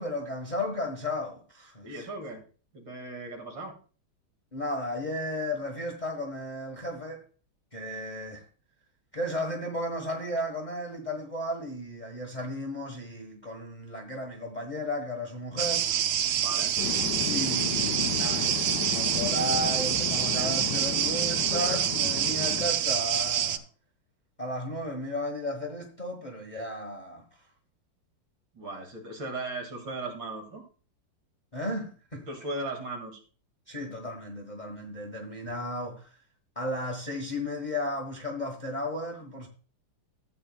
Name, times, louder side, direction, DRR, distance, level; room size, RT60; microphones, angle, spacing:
voice 1, 0.0-2.1 4.5-7.2 7.7-8.4 9.1-15.9 17.3-23.6 24.4-27.2 31.5-32.2 33.7-36.1 36.5-39.5, left 1 dB, 25° left, 1.2 m, -34 dB
voice 2, 1.8-2.4 2.7-3.7 16.4-16.7 28.5-30.6 32.3-33.2, right 2 dB, 65° right, 2.8 m, -37 dB
sound 1, 15.6-23.6, right 10 dB, 80° right, 1.4 m, -27 dB
sound 2, 16.8-22.7, left 11 dB, 70° left, 1.1 m, -34 dB
14.0 x 8.5 x 2.3 m
omnidirectional pair, 2.2 m